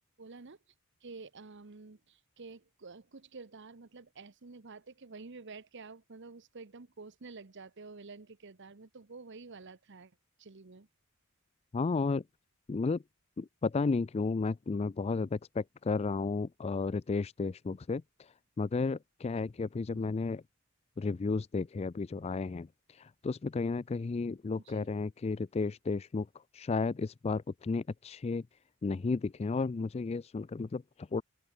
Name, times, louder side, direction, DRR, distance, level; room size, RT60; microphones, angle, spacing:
voice 1, 0.2-0.6 1.0-10.9 19.9-20.1 24.6-24.9, right 4 dB, 55° right, 1.0 m, -50 dB
voice 2, 11.7-12.2 12.7-13.0 13.4-20.4 21.0-26.3 26.5-28.4 28.8-31.2, left 4 dB, 30° left, 0.4 m, -33 dB
open air
head